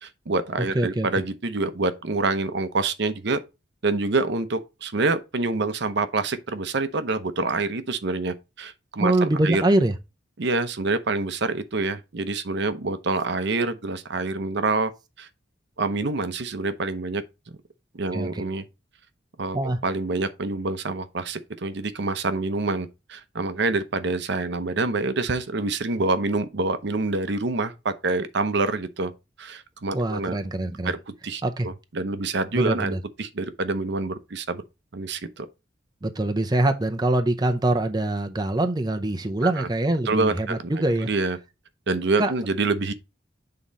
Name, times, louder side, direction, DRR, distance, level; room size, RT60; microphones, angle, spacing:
voice 1, 0.0-3.4 3.8-9.6 10.4-14.9 15.2-15.3 15.8-17.2 17.9-18.7 19.4-19.6 19.8-29.1 29.4-30.4 30.8-31.0 31.2-34.6 34.9-35.5 39.4-39.7 40.1-40.7 41.0-41.4 41.9-42.9, right 3 dB, 65° right, 0.7 m, -26 dB
voice 2, 0.7-1.1 9.0-9.9 18.1-18.4 19.5-19.8 29.9-30.9 31.4-31.7 32.5-33.0 36.0-41.1 42.2-42.3, right 1 dB, 20° right, 0.6 m, -24 dB
7.4 x 3.8 x 4.0 m
head